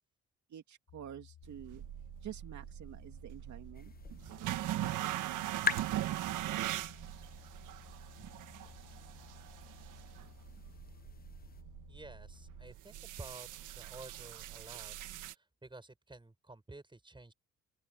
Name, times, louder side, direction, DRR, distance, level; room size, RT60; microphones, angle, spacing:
voice 1, 0.5-1.8 2.2-3.9, right 10 dB, 70° right, 2.6 m, -48 dB
sound 1, 0.9-12.7, left 10 dB, 65° left, 2.5 m, -57 dB
sound 2, 1.4-15.3, right 14 dB, 90° right, 1.6 m, -41 dB
sound 3, 3.7-11.6, left 5 dB, 30° left, 0.9 m, -44 dB
voice 2, 11.9-13.5 13.7-14.9 15.3-17.3, right 2 dB, 15° right, 7.4 m, -52 dB
open air
cardioid pair, 90°, 30 cm